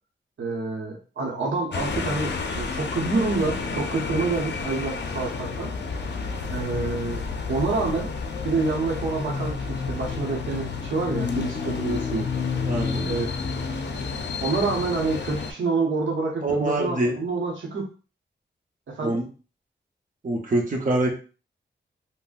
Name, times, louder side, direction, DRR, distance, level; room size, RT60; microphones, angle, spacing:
voice 1, 0.4-5.7 6.5-7.2 7.5-8.1 8.4-12.3 13.0-13.7 14.4-17.9 18.9-19.2, right 3 dB, 90° right, 0 dB, 0.7 m, -27 dB
sound 1, 1.7-15.5, left 4 dB, 65° left, 0.5 m, -30 dB
voice 2, 12.7-13.1 16.4-17.2 19.0-19.3 20.2-21.1, right 2 dB, 45° right, 0 dB, 0.7 m, -24 dB
3.7 x 2.0 x 2.4 m, 0.36 s
wide cardioid pair, 105°, 19 cm